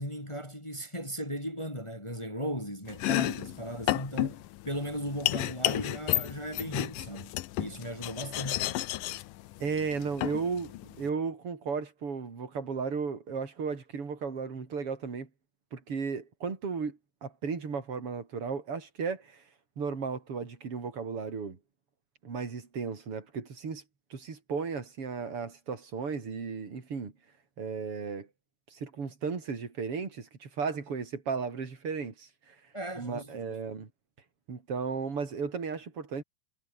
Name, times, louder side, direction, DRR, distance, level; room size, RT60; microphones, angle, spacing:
voice 1, 0.0-8.8 32.7-33.6, equal, 10° left, 3.9 m, -37 dB
Domestic sounds home sounds, 2.9-11.1, left 16 dB, 75° left, 2.4 m, -32 dB
voice 2, 9.6-15.3 15.7-19.4 19.8-21.6 22.2-23.8 24.1-27.1 27.6-28.3 28.7-32.6 33.0-33.9 34.5-36.2, right 5 dB, 40° right, 4.5 m, -35 dB
omnidirectional pair, 4.1 m